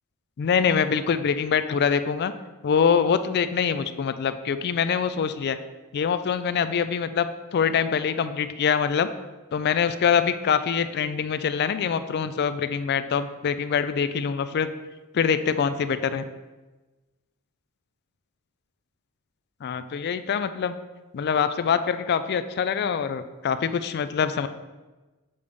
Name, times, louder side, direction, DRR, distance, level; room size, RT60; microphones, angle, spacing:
voice 1, 0.4-2.3 2.6-5.6 5.9-9.1 9.5-14.7 15.1-16.2 19.6-20.7 21.1-24.5, left 7 dB, 50° left, 12 dB, 0.3 m, -24 dB
6.9 x 3.3 x 5.2 m, 1.2 s
head